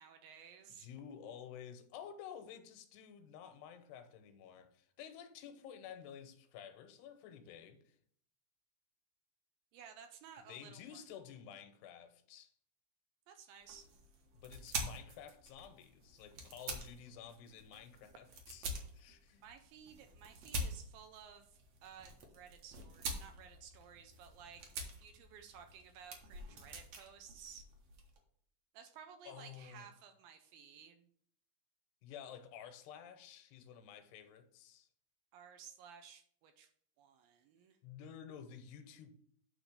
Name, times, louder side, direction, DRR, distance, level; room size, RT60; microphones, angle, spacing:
voice 1, 0.0-0.9 9.7-11.0 13.3-13.9 19.4-27.7 28.7-31.1 35.3-36.7 37.0-37.8, right 7 dB, 80° right, 2.2 m, -56 dB
voice 2, 0.7-8.0 10.5-12.5 14.3-19.5 29.3-29.8 32.0-34.9 37.8-39.1, left 8 dB, 90° left, 2.9 m, -52 dB
sound 1, 13.6-28.2, right 2 dB, 60° right, 1.9 m, -46 dB
9.1 x 3.1 x 6.6 m
omnidirectional pair, 4.5 m